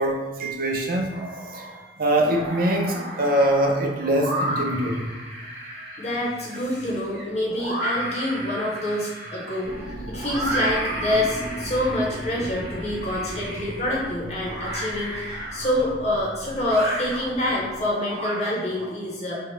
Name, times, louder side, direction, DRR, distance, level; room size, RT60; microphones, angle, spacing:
voice 1, 0.0-5.1, right 1 dB, 50° right, 1 dB, 0.5 m, -24 dB
sound 1, 1.1-1.8 2.1-18.9, right 1 dB, 70° right, 0.9 m, -33 dB
voice 2, 6.0-9.7 10.1-19.4, left 1 dB, 35° left, -4 dB, 0.9 m, -26 dB
sound 2, 9.6-17.9, equal, 60° left, 0.9 m, -37 dB
4.5 x 2.4 x 3.2 m, 1.2 s
head